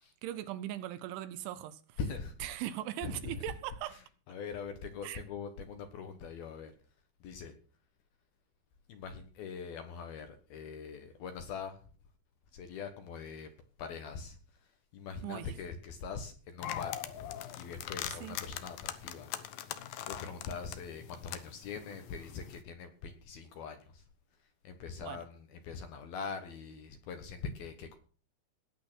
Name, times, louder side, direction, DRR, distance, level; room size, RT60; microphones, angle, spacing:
voice 1, 0.2-2.0 2.4-4.0 5.0-5.2 15.2-15.6 18.1-18.4 25.0-25.3, right 13 dB, 80° right, 3.1 m, -40 dB
voice 2, 2.0-2.3 3.0-3.4 3.9-4.0 4.3-6.7 7.2-7.5 8.9-11.8 12.5-13.5 13.8-14.4 14.9-19.3 19.6-19.8 20.1-24.0 24.6-28.0, left 5 dB, 65° left, 2.6 m, -42 dB
sound 1, 16.6-22.6, left 11 dB, 90° left, 2.0 m, -42 dB
18.5 x 8.4 x 6.3 m
omnidirectional pair, 5.7 m